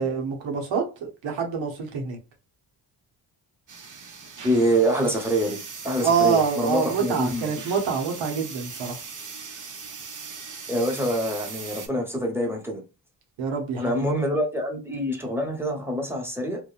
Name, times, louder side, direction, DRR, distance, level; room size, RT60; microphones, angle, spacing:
voice 1, 0.0-2.2 6.0-9.0 13.4-13.8 14.1-14.2, right 6 dB, 75° right, 0.9 m, -26 dB
sound 1, 3.7-11.9, right 5 dB, 45° right, 0.7 m, -39 dB
voice 2, 4.4-5.6 5.8-7.5 10.7-12.8 13.8-16.6, equal, 5° right, 1.0 m, -25 dB
2.9 x 2.1 x 2.3 m
cardioid pair, 65°, 45 cm